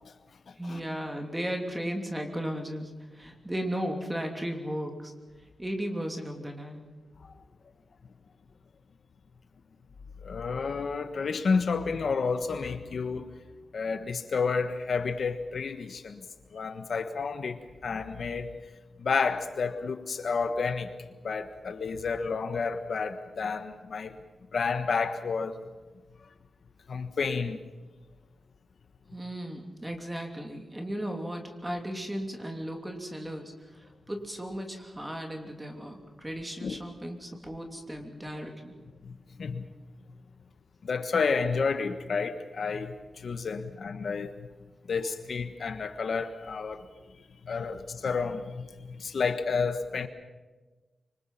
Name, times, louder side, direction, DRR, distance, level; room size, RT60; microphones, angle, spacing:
voice 1, 0.6-5.1 5.6-6.8 29.1-38.8, equal, 10° right, 3.1 m, -35 dB
voice 2, 10.2-13.3 13.7-16.2 16.5-17.6 17.8-18.5 19.0-20.9 21.2-24.2 24.5-25.6 26.9-27.6 36.6-36.8 39.0-39.1 39.4-39.7 40.8-44.3 44.9-46.8 47.4-50.1, left 5 dB, 60° left, 1.3 m, -30 dB
26.0 x 25.0 x 5.8 m
wide cardioid pair, 150°, 0 cm